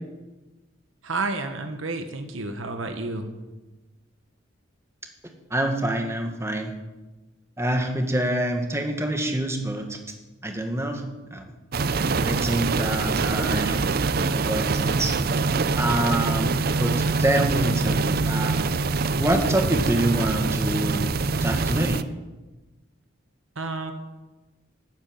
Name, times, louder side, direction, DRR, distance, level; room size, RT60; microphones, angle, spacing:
voice 1, 1.0-3.3 23.5-23.9, right 3 dB, 85° right, 6 dB, 1.6 m, -30 dB
voice 2, 5.5-6.7 7.6-10.0 10.4-11.0 11.3-11.4 12.2-13.8 14.3-15.2 15.8-16.9 17.2-18.6 19.2-21.1 21.4-22.0, right 1 dB, 15° right, 4 dB, 1.7 m, -26 dB
sound 1, 11.7-22.0, right 4 dB, 50° right, 0.5 m, -24 dB
12.5 x 9.3 x 9.0 m, 1.1 s
head